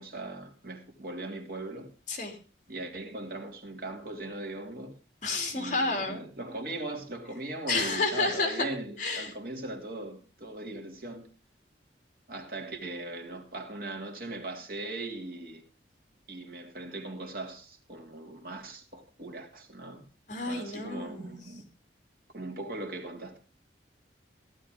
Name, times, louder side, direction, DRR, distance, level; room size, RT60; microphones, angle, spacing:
voice 1, 0.0-1.9 2.7-4.9 5.5-11.3 12.3-15.6 16.3-20.1 20.4-21.6 22.3-23.4, right 2 dB, 55° right, 2.7 m, -39 dB
voice 2, 5.2-6.2 7.7-8.7 9.0-9.3 20.3-21.3, left 3 dB, 45° left, 3.3 m, -30 dB
15.5 x 12.0 x 3.7 m
head